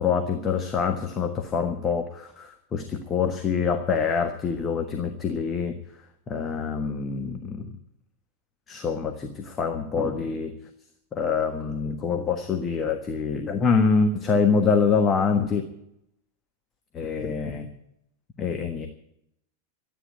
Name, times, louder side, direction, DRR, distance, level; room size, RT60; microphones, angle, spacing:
voice 1, 0.0-5.7 6.3-7.7 8.7-10.5 11.1-15.6 16.9-17.7 18.4-18.9, left 5 dB, 25° left, 5 dB, 1.4 m, -25 dB
13.0 x 9.3 x 9.9 m, 0.78 s
figure-of-eight pair, 90°, 0 cm